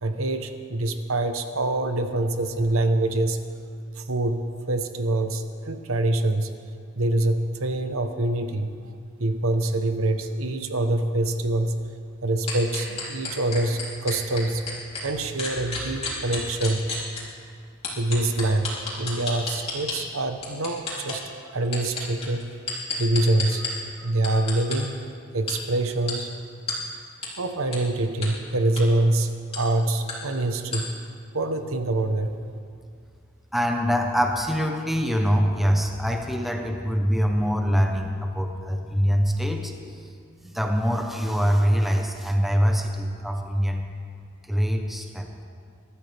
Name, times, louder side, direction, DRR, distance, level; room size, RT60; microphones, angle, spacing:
voice 1, 0.0-3.4 3.9-6.5 7.0-8.7 9.2-11.7 12.2-14.6 15.0-16.8 17.9-18.7 19.0-21.2 21.5-22.5 23.0-25.0 25.3-26.3 27.4-30.9 31.3-32.4, right 2 dB, 75° right, 7 dB, 1.0 m, -25 dB
sound 1, 12.5-15.0 15.4-17.2 17.8-20.0 20.4-21.2 21.7-23.7 24.2-24.8 25.5-25.6 26.1-26.2 26.7-26.8 27.2-27.3 27.7-27.8 28.2-28.3 28.7-28.9 29.5-29.6 30.1-30.2 30.7-30.8, left 4 dB, 30° left, 3.3 m, -30 dB
voice 2, 33.5-39.7 40.0-40.1 40.4-43.8 44.5-45.3, equal, ahead, 2 dB, 1.0 m, -24 dB
23.0 x 12.5 x 3.5 m, 2.3 s
head